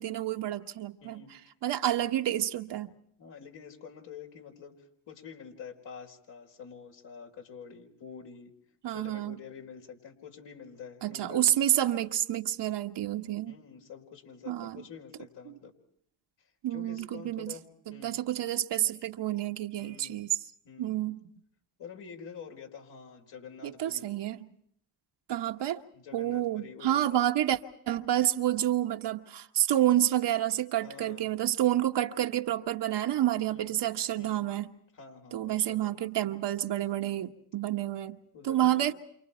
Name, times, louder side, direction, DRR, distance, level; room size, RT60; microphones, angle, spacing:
voice 1, 0.0-1.2 1.6-2.9 8.8-9.4 11.0-13.6 14.5-14.8 16.6-17.5 17.9-20.3 20.8-21.2 23.6-24.4 25.3-25.8 26.1-27.6 27.9-34.7 35.3-38.2 38.4-38.9, right 12 dB, 60° right, 1.5 m, -29 dB
voice 2, 1.0-1.5 3.2-8.5 8.9-11.5 13.4-15.7 16.4-17.6 17.9-18.2 19.8-20.2 20.6-21.0 21.8-24.1 25.9-27.2 30.8-31.4 33.5-33.7 34.2-34.4 34.9-35.9 38.3-38.8, left 6 dB, 65° left, 4.9 m, -47 dB
29.0 x 27.5 x 4.4 m
supercardioid pair, 60°, 46 cm